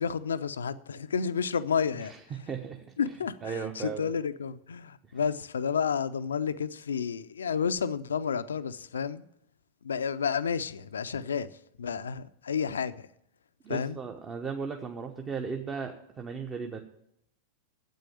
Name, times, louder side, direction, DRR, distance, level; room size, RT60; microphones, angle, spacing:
voice 1, 0.0-2.1 3.0-9.2 9.8-11.5 11.8-13.0 13.7-14.0, left 6 dB, 70° left, 0.5 m, -31 dB
voice 2, 2.0-3.1 3.4-4.1 13.6-16.8, right 6 dB, 20° right, 0.9 m, -36 dB
9.3 x 8.3 x 7.5 m
figure-of-eight pair, 90°, 0 cm